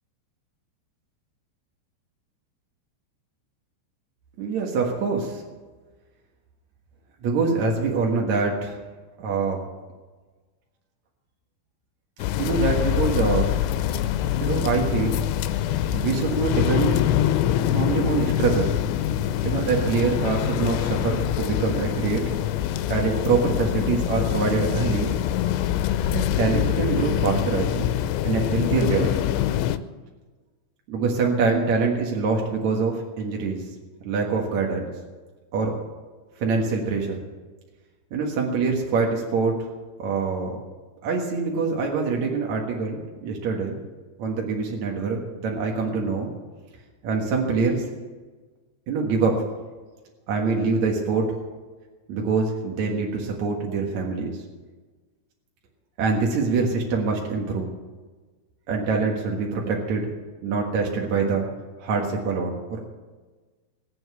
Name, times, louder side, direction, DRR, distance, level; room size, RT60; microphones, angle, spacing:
voice 1, 4.4-5.4 7.2-8.8 9.2-9.7 12.4-13.5 14.4-15.2 15.9-17.0 17.7-18.7 19.4-22.2 22.9-25.2 26.1-27.9 28.2-29.1 30.9-33.6 34.0-34.9 35.5-35.7 36.4-37.2 38.1-39.5 40.0-40.6 41.0-43.8 44.2-46.3 47.0-47.8 48.9-49.4 50.3-51.3 52.1-54.4 56.0-57.7 58.7-60.1 60.4-61.5 61.8-62.9, right 4 dB, 55° right, -1 dB, 2.1 m, -24 dB
sound 1, 12.2-29.8, left 11 dB, 90° left, 3.0 m, -24 dB
20.0 x 8.0 x 8.3 m, 1.3 s
omnidirectional pair, 5.2 m